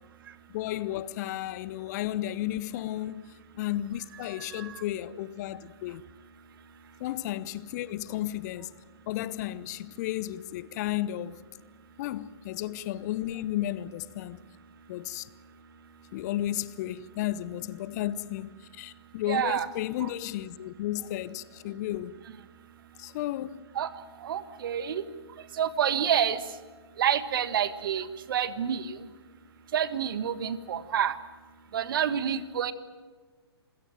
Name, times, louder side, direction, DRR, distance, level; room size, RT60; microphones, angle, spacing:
voice 1, 0.5-3.2 3.6-6.0 7.0-8.8 9.1-11.4 12.0-14.4 14.9-15.3 16.1-22.1 23.0-23.7, left 14 dB, 40° left, 0.9 m, -33 dB
voice 2, 19.3-19.7 20.0-20.1 23.7-23.9 24.2-25.0 25.6-26.4 27.0-29.0 29.7-31.1 31.7-32.7, right 9 dB, 55° right, 1.6 m, -28 dB
27.5 x 16.5 x 9.0 m
figure-of-eight pair, 115°, 14 cm